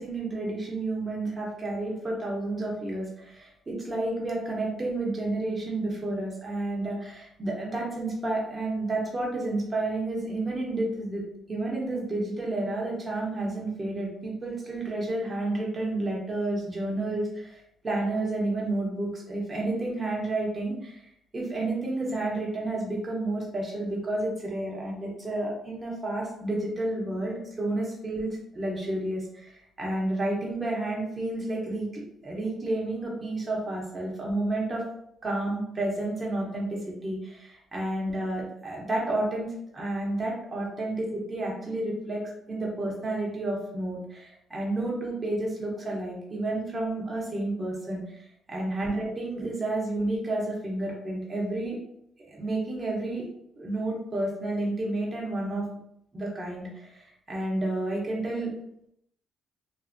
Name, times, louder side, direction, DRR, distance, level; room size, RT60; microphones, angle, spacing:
voice 1, 0.0-11.2 11.5-21.0 21.3-34.8 35.2-42.2 42.5-51.8 52.3-53.3 53.5-55.6 56.1-58.5, right 2 dB, 30° right, -3 dB, 0.9 m, -31 dB
2.6 x 2.5 x 2.5 m, 0.75 s
cardioid pair, 90°, 0 cm